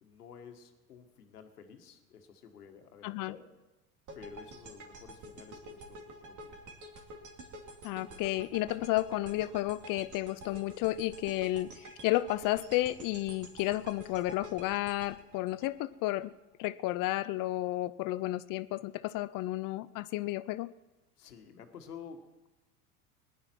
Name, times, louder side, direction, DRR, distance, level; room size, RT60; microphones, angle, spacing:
voice 1, 0.0-3.5 4.1-6.6 21.2-22.5, left 6 dB, 85° left, 6 dB, 1.6 m, -51 dB
voice 2, 3.0-3.3 7.8-16.3 16.6-20.7, left 17 dB, 45° left, 16 dB, 0.6 m, -32 dB
sound 1, 4.1-16.3, right 1 dB, 40° right, 2.6 m, -49 dB
19.5 x 11.0 x 4.5 m, 1.1 s
hypercardioid pair, 75°, 45 cm